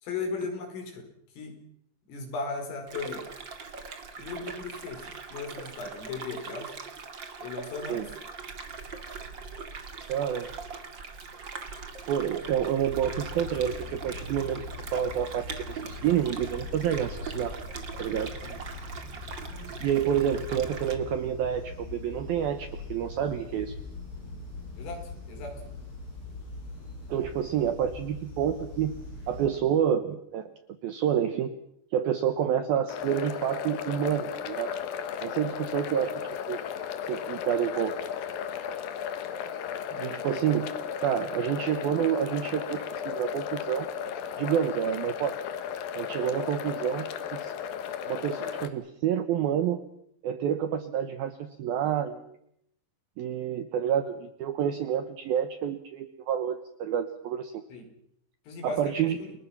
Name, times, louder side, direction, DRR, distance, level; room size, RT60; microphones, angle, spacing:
voice 1, 0.0-1.1 1.4-1.6 2.1-3.3 4.2-6.7 7.4-8.1 18.4-18.5 24.8-25.0 25.3-25.6 57.7-57.9 58.5-59.3, left 4 dB, 80° left, 3 dB, 7.4 m, -36 dB
sound 1, 2.9-20.9, right 5 dB, 45° right, 1.6 m, -41 dB
voice 2, 10.1-10.5 12.1-14.6 14.9-17.5 18.0-18.4 19.8-23.8 27.1-28.9 29.3-30.5 30.8-31.5 31.9-34.7 35.2-36.1 36.5-36.6 37.1-37.9 39.9-40.7 41.0-43.9 44.4-45.3 45.9-47.5 48.1-49.8 50.2-52.4 53.2-57.6 58.6-59.2, right 9 dB, 75° right, 9 dB, 2.2 m, -28 dB
sound 2, 12.8-29.5, left 3 dB, 30° left, 8.8 m, -42 dB
sound 3, 32.9-48.7, left 8 dB, 65° left, 2.5 m, -35 dB
30.0 x 20.5 x 5.9 m, 0.74 s
omnidirectional pair, 5.7 m